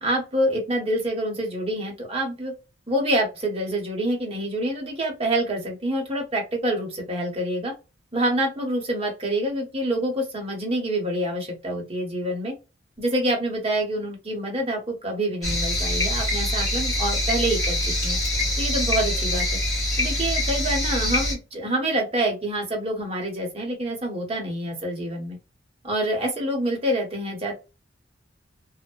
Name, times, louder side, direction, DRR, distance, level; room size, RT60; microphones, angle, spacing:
voice 1, 0.0-2.5 2.9-7.7 8.1-12.5 13.0-18.2 18.6-19.5 20.0-25.4 25.8-27.6, right 1 dB, 30° right, 1 dB, 0.9 m, -26 dB
sound 1, 15.4-21.3, left 1 dB, 20° left, 1.3 m, -24 dB
2.7 x 2.0 x 2.3 m, 0.28 s
head